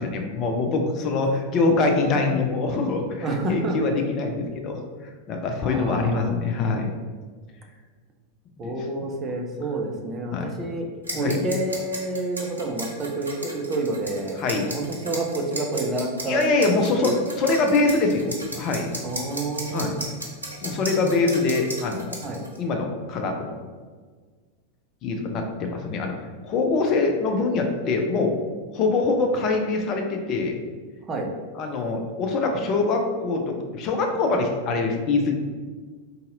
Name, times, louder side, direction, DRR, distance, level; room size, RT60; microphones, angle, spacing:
voice 1, 0.0-4.8 5.3-6.9 8.6-8.7 10.3-10.5 11.1-11.4 14.4-14.7 16.3-18.9 19.7-19.9 20.6-22.2 22.6-23.6 25.0-26.1 26.4-28.3 28.7-30.6 31.5-35.3, left 3 dB, 35° left, 3 dB, 0.5 m, -24 dB
voice 2, 3.2-3.8 5.6-6.3 8.6-10.9 11.1-14.4 14.7-16.4 17.0-17.1 19.0-20.0 22.2-22.4 31.1-31.3, right 2 dB, 25° right, 1 dB, 0.5 m, -28 dB
sound 1, 11.0-22.6, right 1 dB, 80° right, 0.7 m, -35 dB
3.9 x 2.7 x 2.5 m, 1.5 s
figure-of-eight pair, 90°, 0 cm